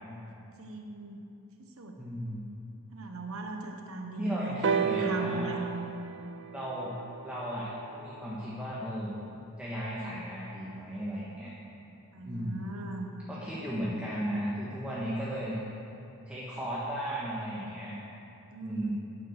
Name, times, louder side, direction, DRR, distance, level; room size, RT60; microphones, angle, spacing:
voice 1, 0.6-1.2 1.6-2.0 2.9-5.7 12.1-13.1 18.5-18.9, right 2 dB, 70° right, 2 dB, 1.1 m, -38 dB
voice 2, 2.0-2.5 4.2-5.5 6.5-6.9 7.2-9.2 9.6-11.5 12.2-12.7 13.3-15.6 16.3-17.9 18.6-18.9, equal, 5° right, -8 dB, 1.6 m, -35 dB
sound 1, 4.6-8.5 9.4-9.5, right 6 dB, 55° right, 0.5 m, -33 dB
10.5 x 10.0 x 6.6 m, 2.8 s
head